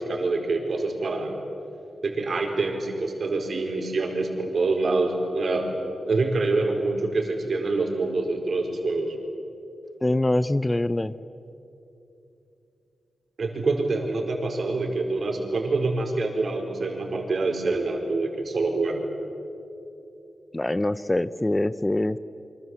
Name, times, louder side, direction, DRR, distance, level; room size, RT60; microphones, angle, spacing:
voice 1, 0.0-1.3 2.0-5.7 6.1-9.1 13.4-19.1, right 3 dB, 55° right, 2 dB, 4.7 m, -26 dB
voice 2, 10.0-11.1 20.5-22.2, left 1 dB, 15° left, 15 dB, 0.5 m, -24 dB
28.5 x 25.0 x 8.0 m, 2.8 s
wide cardioid pair, 110°, 0 cm